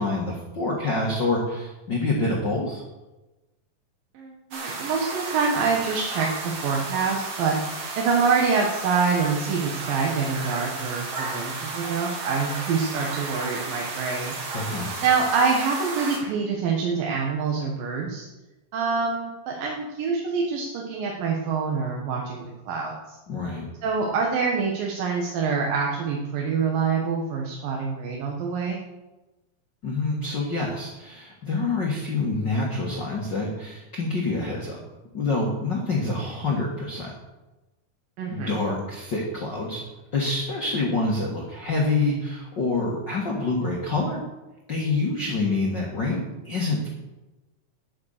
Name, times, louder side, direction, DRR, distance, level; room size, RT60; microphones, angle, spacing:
voice 1, 0.0-2.8 14.5-14.9 23.3-23.7 29.8-34.8 35.1-37.1 38.3-39.8 40.1-44.2 44.7-46.9, left 3 dB, 40° left, -3 dB, 1.7 m, -26 dB
voice 2, 4.1-14.4 15.0-18.3 18.7-23.2 23.8-28.8 38.2-38.5, right 5 dB, 75° right, -1 dB, 3.0 m, -26 dB
sound 1, 4.5-16.2, right 3 dB, 50° right, 2.6 m, -33 dB
9.8 x 9.6 x 6.6 m, 1.1 s
omnidirectional pair, 4.0 m